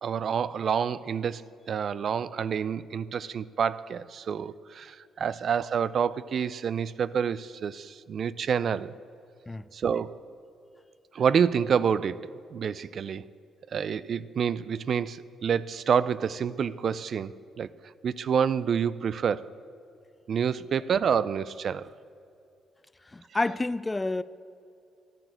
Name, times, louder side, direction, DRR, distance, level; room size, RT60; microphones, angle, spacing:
voice 1, 0.0-8.9 9.7-10.2 11.1-12.2 12.5-13.2 13.7-17.7 18.0-19.5 20.3-21.9, right 7 dB, 55° right, 0.4 m, -28 dB
voice 2, 23.1-24.2, left 2 dB, 20° left, 0.4 m, -29 dB
12.0 x 11.5 x 7.7 m
cardioid pair, 90°, 0 cm